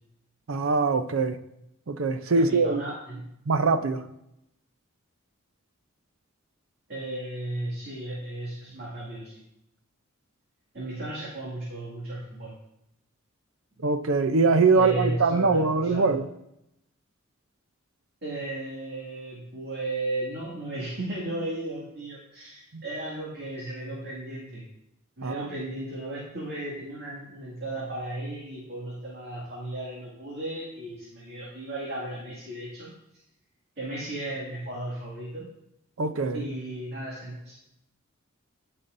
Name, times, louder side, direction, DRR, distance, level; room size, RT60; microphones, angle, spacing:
voice 1, 0.5-1.4 1.9-2.8 3.5-4.0 13.8-16.3 22.7-22.8 25.2-25.5 36.0-36.4, right 4 dB, 75° right, 10 dB, 0.6 m, -23 dB
voice 2, 2.3-3.3 6.9-9.4 10.7-12.5 14.8-16.2 18.2-24.7 25.2-32.9 33.8-35.5 36.3-37.5, right 1 dB, 55° right, -6 dB, 2.3 m, -35 dB
16.5 x 5.8 x 2.6 m, 0.82 s
head